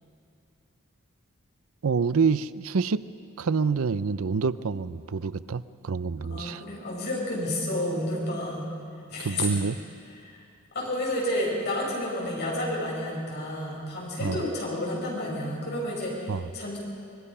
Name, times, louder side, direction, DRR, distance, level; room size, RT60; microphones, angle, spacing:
voice 1, 1.8-3.0 3.4-6.6 9.2-9.8 14.2-14.4 16.3-16.5, right 5 dB, 85° right, 15 dB, 0.6 m, -27 dB
voice 2, 6.3-8.7 9.1-9.6 10.2-10.3 10.7-16.8, left 1 dB, 55° left, -4 dB, 7.3 m, -30 dB
24.5 x 21.5 x 5.6 m, 2.4 s
head